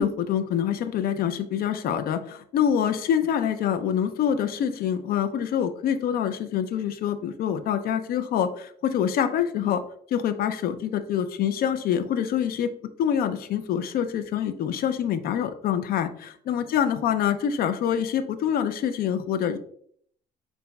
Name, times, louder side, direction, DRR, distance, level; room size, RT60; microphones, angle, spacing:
voice 1, 0.0-9.8 10.1-12.7 13.0-19.6, left 9 dB, 60° left, 11 dB, 0.5 m, -25 dB
6.9 x 2.6 x 2.2 m, 0.63 s
cardioid pair, 110°, 17 cm